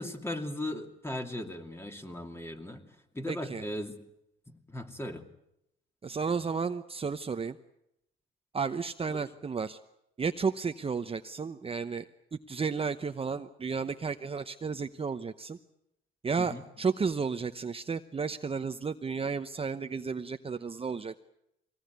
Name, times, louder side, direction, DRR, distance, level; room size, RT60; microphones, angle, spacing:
voice 1, 0.0-2.8 3.1-4.0 4.5-5.2 9.1-9.2 16.4-16.6, left 1 dB, 10° left, 5 dB, 2.6 m, -37 dB
voice 2, 3.3-3.7 6.0-7.6 8.5-9.8 10.2-15.6 16.2-21.2, right 5 dB, 30° right, 8 dB, 0.9 m, -33 dB
23.5 x 19.0 x 9.4 m, 0.81 s
cardioid pair, 90°, 20 cm